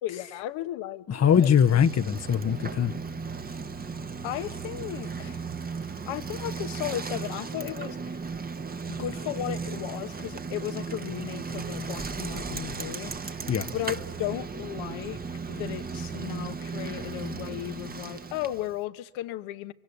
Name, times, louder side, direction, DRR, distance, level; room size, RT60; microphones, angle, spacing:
voice 1, 0.0-1.5 4.2-5.4 6.1-8.2 8.9-13.1 13.5-15.2 15.5-19.7, left 13 dB, 70° left, 1.3 m, -35 dB
voice 2, 1.1-2.9 13.5-13.7, left 8 dB, 35° left, 0.9 m, -22 dB
Bicycle, 1.2-18.8, right 5 dB, 20° right, 1.1 m, -36 dB
25.0 x 24.0 x 9.8 m
supercardioid pair, 80°, 48 cm